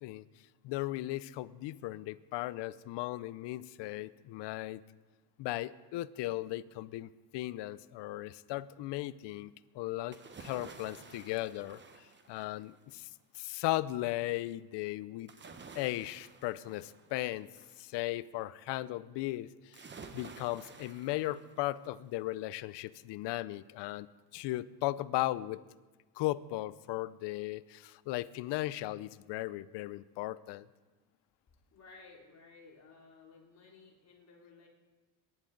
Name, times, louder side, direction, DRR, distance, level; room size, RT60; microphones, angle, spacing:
voice 1, 0.6-4.8 5.4-11.8 12.3-13.1 13.3-15.3 15.7-17.5 17.8-19.9 20.1-24.1 24.3-25.6 26.2-30.7, left 16 dB, 65° left, 17 dB, 0.7 m, -37 dB
sound 1, 10.1-12.9 15.3-17.9 19.7-22.0 22.4-22.5, right 4 dB, 25° right, 1.1 m, -52 dB
voice 2, 31.7-34.7, left 4 dB, 35° left, -3 dB, 3.4 m, -56 dB
22.5 x 10.5 x 3.9 m, 1.2 s
cardioid pair, 110°, 45 cm